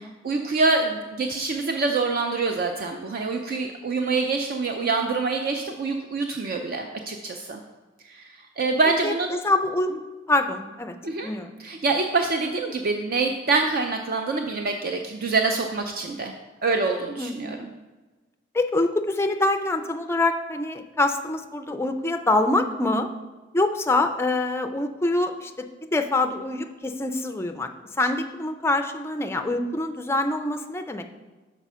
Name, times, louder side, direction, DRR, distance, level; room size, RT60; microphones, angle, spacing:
voice 1, 0.0-7.6 8.1-8.2 8.6-9.3 11.0-11.3 11.6-16.3 16.6-17.7, right 3 dB, 50° right, 4 dB, 0.4 m, -25 dB
voice 2, 9.0-9.9 10.3-11.0 11.2-11.5 17.2-17.6 18.5-23.1 23.5-25.7 25.9-27.7 28.0-31.0, left 2 dB, 15° left, 7 dB, 0.4 m, -25 dB
6.0 x 4.1 x 5.5 m, 1.2 s
head